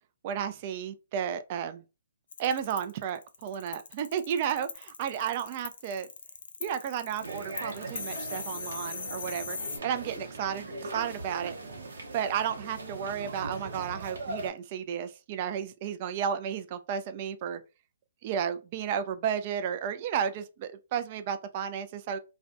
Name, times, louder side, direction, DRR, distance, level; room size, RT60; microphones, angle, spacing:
voice 1, 0.2-1.8 2.4-6.1 6.6-9.6 9.8-11.6 12.1-17.6 18.2-22.2, right 8 dB, 40° right, 0.3 m, -33 dB
sound 1, 2.3-9.8, left 5 dB, 65° left, 0.5 m, -39 dB
sound 2, 7.2-14.5, right 2 dB, 70° right, 0.8 m, -40 dB
2.4 x 2.1 x 2.5 m
figure-of-eight pair, 135°, 0 cm